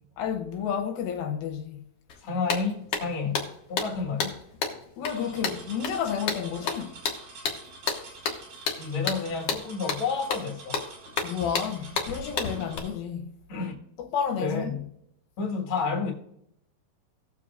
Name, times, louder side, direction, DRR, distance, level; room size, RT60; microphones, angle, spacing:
voice 1, 0.2-1.8 5.0-7.0 11.2-13.3 14.1-14.8, left 7 dB, 80° left, 2.5 m, -31 dB
sound 1, 2.1-2.2 2.5-12.8, left 5 dB, 65° left, 1.5 m, -32 dB
voice 2, 2.2-4.4 8.8-10.8 13.5-13.7 14.4-14.8 15.4-16.1, left 4 dB, 45° left, 1.9 m, -30 dB
sound 2, 5.1-12.9, right 3 dB, 80° right, 4.6 m, -47 dB
18.5 x 7.1 x 2.5 m
omnidirectional pair, 4.3 m